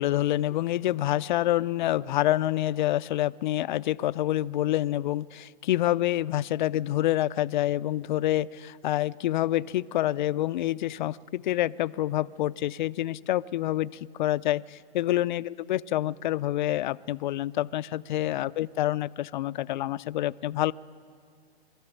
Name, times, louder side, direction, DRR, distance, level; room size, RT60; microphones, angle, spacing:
voice 1, 0.0-13.9 14.2-20.7, left 14 dB, 50° left, 16 dB, 0.5 m, -27 dB
23.5 x 13.5 x 9.0 m, 2.1 s
hypercardioid pair, 150°, 30 cm